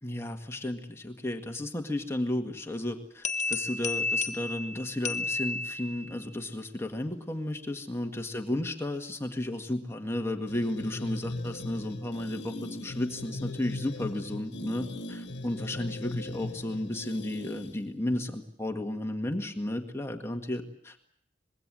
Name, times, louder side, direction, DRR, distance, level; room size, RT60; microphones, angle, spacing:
voice 1, 0.0-21.0, left 1 dB, 15° left, 4 dB, 1.9 m, -33 dB
sound 1, 3.2-6.2, left 4 dB, 40° left, 1.8 m, -32 dB
sound 2, 10.5-18.0, left 2 dB, 75° left, 1.5 m, -39 dB
25.5 x 21.5 x 7.6 m, 0.66 s
head